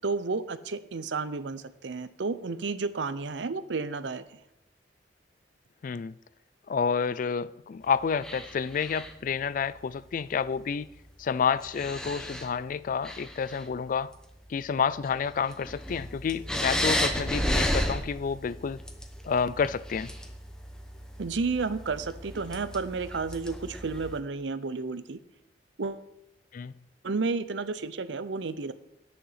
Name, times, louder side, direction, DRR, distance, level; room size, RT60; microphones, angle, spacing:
voice 1, 0.0-4.2 21.2-25.2 25.8-26.1 27.0-28.7, right 4 dB, 75° right, 0.6 m, -31 dB
voice 2, 5.8-6.1 6.7-10.9 11.2-14.1 14.5-18.8 19.2-20.1 26.5-26.7, left 6 dB, 45° left, 0.3 m, -29 dB
sound 1, 8.2-9.3 10.8-10.9 11.6-12.5 12.9-13.7 14.3-14.4 15.0-24.2, equal, 5° left, 0.9 m, -33 dB
9.7 x 6.4 x 5.7 m
head